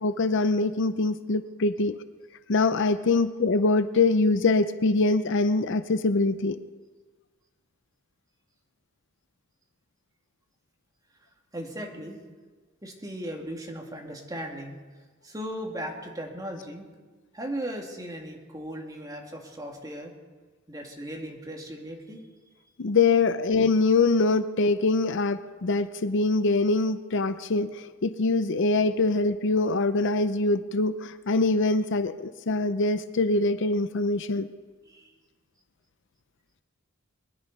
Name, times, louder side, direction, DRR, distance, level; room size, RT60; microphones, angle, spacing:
voice 1, 0.0-2.0 2.5-6.6 22.8-34.5, left 3 dB, 65° left, 12 dB, 0.6 m, -24 dB
voice 2, 11.5-12.2 12.8-14.7 15.2-16.9 17.3-20.1 20.7-22.3 34.8-35.1, equal, 20° right, 1 dB, 2.3 m, -37 dB
22.0 x 11.0 x 5.3 m, 1.3 s
head